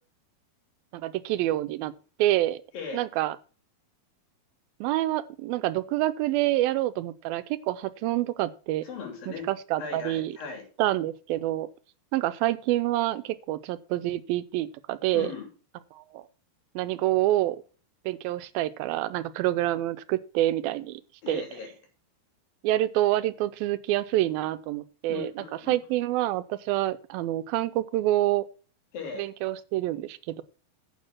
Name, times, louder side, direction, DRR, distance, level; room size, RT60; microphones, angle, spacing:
voice 1, 0.9-1.9 2.2-2.6 2.9-3.4 4.8-8.8 9.3-10.3 10.8-11.7 12.1-15.3 15.9-16.2 16.8-17.6 18.1-21.0 21.3-21.4 22.6-28.5 29.2-30.4, right 15 dB, 90° right, 13 dB, 2.5 m, -27 dB
voice 2, 8.8-9.5 9.8-10.6 15.1-15.5 21.2-21.7 25.1-25.8 28.9-29.2, left 5 dB, 75° left, 2 dB, 4.7 m, -38 dB
9.6 x 6.2 x 5.9 m, 0.37 s
omnidirectional pair, 4.2 m